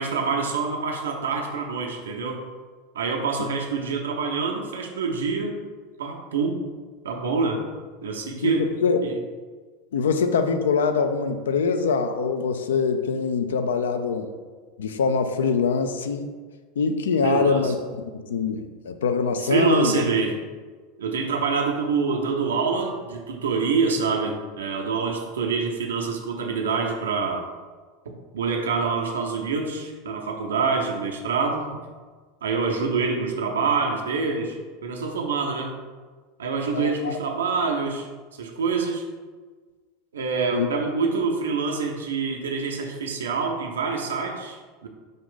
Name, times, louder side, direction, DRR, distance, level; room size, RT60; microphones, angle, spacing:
voice 1, 0.0-2.4 2.9-5.6 6.0-6.6 7.0-7.6 8.0-8.7 9.0-9.2 17.2-17.7 19.5-20.4 21.0-27.4 28.1-31.8 32.4-35.7 36.4-39.0 40.1-44.9, right 4 dB, 75° right, 2 dB, 0.6 m, -26 dB
voice 2, 8.4-9.0 9.9-14.3 14.8-16.3 16.8-17.8 18.1-19.9 36.7-37.1 40.5-40.7, left 5 dB, 75° left, 8 dB, 0.3 m, -23 dB
5.2 x 2.5 x 3.8 m, 1.5 s
figure-of-eight pair, 80°, 0 cm